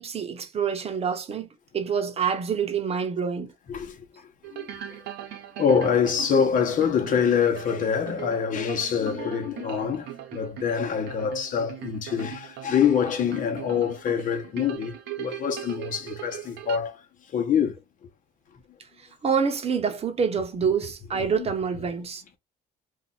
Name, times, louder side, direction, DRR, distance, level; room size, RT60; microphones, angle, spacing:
voice 1, 0.0-1.5 1.7-3.5 19.2-22.2, right 6 dB, 35° right, 0.9 m, -26 dB
sound 1, 4.4-16.8, right 11 dB, 75° right, 1.0 m, -40 dB
voice 2, 5.6-10.1 10.3-14.9 15.2-16.9 17.3-17.7 21.4-21.5, left 7 dB, 50° left, 1.0 m, -25 dB
2.7 x 2.5 x 4.1 m
cardioid pair, 110°, 17 cm